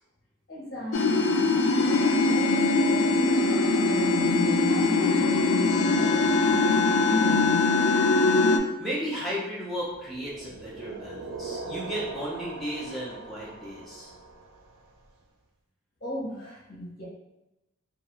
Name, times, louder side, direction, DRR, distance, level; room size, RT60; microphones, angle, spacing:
voice 1, 0.5-4.4 4.7-7.6 16.0-17.1, equal, 45° left, -5 dB, 0.7 m, -36 dB
sound 1, 0.9-8.6, left 3 dB, 75° left, 0.3 m, -22 dB
voice 2, 8.8-14.1, equal, ahead, -8 dB, 0.5 m, -34 dB
sound 2, 9.9-14.9, right 3 dB, 85° right, 0.4 m, -40 dB
2.3 x 2.2 x 2.9 m, 0.96 s
head